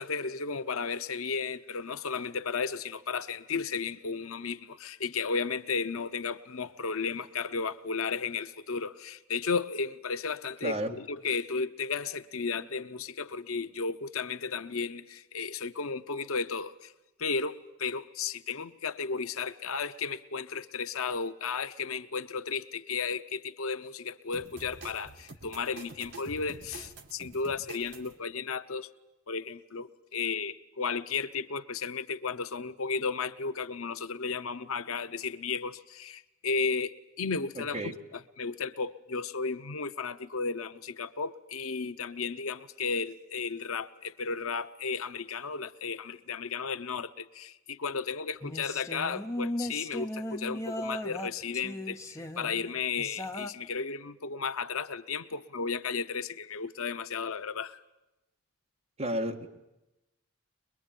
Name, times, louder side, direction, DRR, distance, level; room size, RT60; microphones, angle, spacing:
voice 1, 0.0-16.9 17.2-28.9 29.3-57.8, left 5 dB, 85° left, 0.8 m, -34 dB
voice 2, 10.6-10.9 37.6-38.0 59.0-59.5, right 1 dB, 30° right, 1.9 m, -32 dB
sound 1, 24.3-28.1, right 3 dB, 55° right, 2.4 m, -47 dB
sound 2, 48.4-53.5, left 1 dB, 15° left, 0.9 m, -37 dB
22.5 x 22.5 x 9.1 m
head